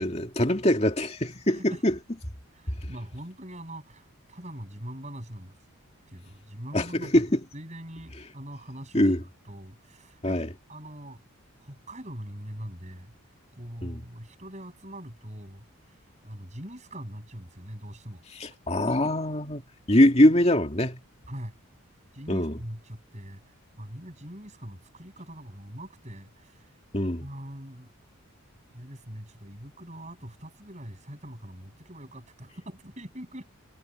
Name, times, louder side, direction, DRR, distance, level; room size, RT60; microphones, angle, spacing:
voice 1, 0.0-1.9 6.7-7.4 8.9-9.2 10.2-10.5 13.8-14.0 18.3-19.6 19.9-21.0 22.3-22.6 26.9-27.2, left 1 dB, 30° left, 2.5 m, -23 dB
voice 2, 1.5-1.8 2.5-5.6 6.1-7.1 7.5-11.2 11.6-13.1 13.5-18.2 18.9-19.1 21.3-21.6 22.1-23.4 23.8-26.6 27.2-27.9 28.7-33.5, equal, 30° right, 7.2 m, -42 dB
head